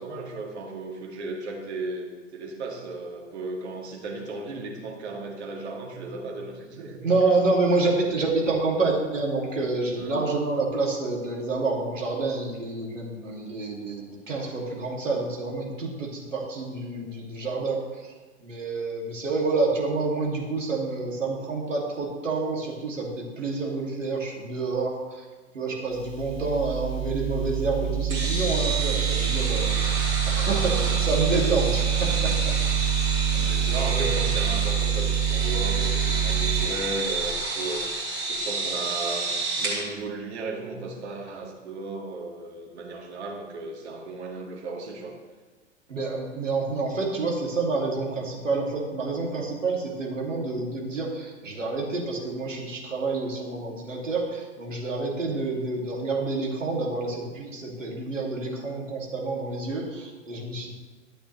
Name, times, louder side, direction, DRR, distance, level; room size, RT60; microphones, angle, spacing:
voice 1, 0.0-7.4 10.0-10.2 33.3-45.2 55.3-55.5, right 3 dB, 55° right, 0 dB, 2.0 m, -35 dB
voice 2, 7.0-17.8 18.4-25.2 25.5-32.5 33.3-34.1 45.9-60.7, right 3 dB, 75° right, -2 dB, 2.5 m, -28 dB
sound 1, 25.9-36.6, right 9 dB, 15° right, 3.0 m, -26 dB
sound 2, 28.1-39.8, right 3 dB, 35° right, 3.1 m, -30 dB
12.0 x 7.9 x 3.2 m, 1.3 s
figure-of-eight pair, 100°, 38 cm